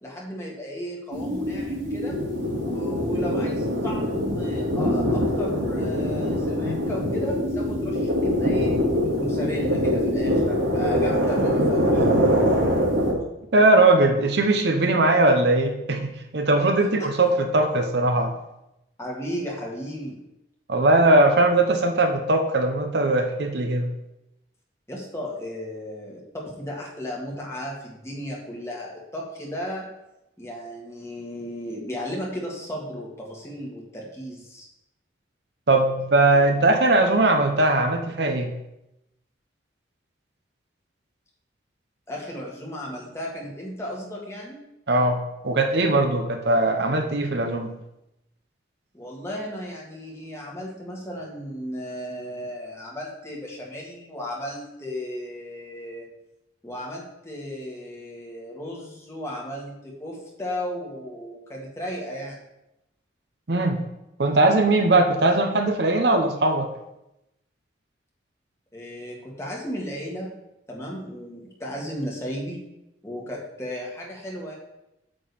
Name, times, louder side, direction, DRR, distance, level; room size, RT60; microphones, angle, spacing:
voice 1, 0.0-2.2 2.6-8.7 9.0-12.3 16.8-17.1 19.0-20.2 24.9-29.8 30.4-34.7 42.1-44.6 48.9-56.1 56.6-62.4 68.7-70.3 70.7-72.6 73.0-74.5, equal, 15° left, -3 dB, 1.7 m, -35 dB
sound 1, 1.1-13.1, equal, 85° right, 2.3 m, -23 dB
voice 2, 13.5-18.3 20.7-23.9 35.7-38.5 44.9-47.7 63.5-63.8 64.2-66.7, right 2 dB, 60° right, 5 dB, 0.8 m, -20 dB
8.7 x 3.8 x 6.9 m, 0.89 s
head